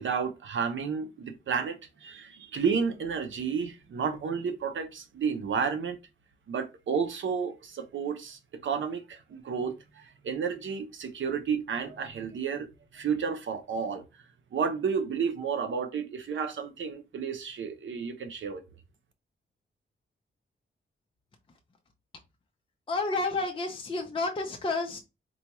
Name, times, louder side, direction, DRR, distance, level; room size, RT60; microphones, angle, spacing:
voice 1, 0.0-6.0 6.5-14.0 14.5-18.6, right 6 dB, 75° right, 0.7 m, -31 dB
voice 2, 22.9-25.0, left 3 dB, 25° left, 0.5 m, -30 dB
4.1 x 2.3 x 2.9 m
wide cardioid pair, 145°, 20 cm